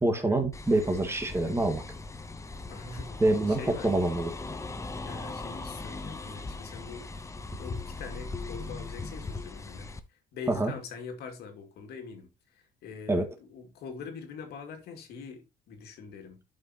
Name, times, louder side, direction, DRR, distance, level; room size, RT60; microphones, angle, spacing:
voice 1, 0.0-1.8 3.2-4.3 10.6-10.7 13.1-13.3, right 2 dB, 15° right, 1.9 m, -26 dB
sound 1, 0.5-10.0, left 3 dB, 20° left, 0.9 m, -39 dB
voice 2, 2.7-3.2 3.5-3.9 5.0-7.1 7.6-9.9 10.3-12.3 12.8-16.4, left 5 dB, 75° left, 2.4 m, -43 dB
11.5 x 5.4 x 3.0 m
cardioid pair, 110°, 17 cm